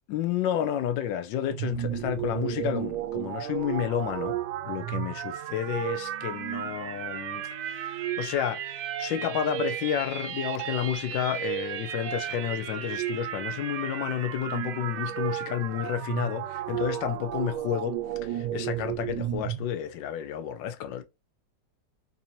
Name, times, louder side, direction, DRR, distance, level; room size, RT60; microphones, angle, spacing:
voice 1, 0.1-21.0, left 10 dB, 85° left, 1.3 m, -31 dB
sound 1, 1.5-19.6, right 11 dB, 70° right, 1.1 m, -33 dB
4.1 x 2.6 x 2.9 m
omnidirectional pair, 2.0 m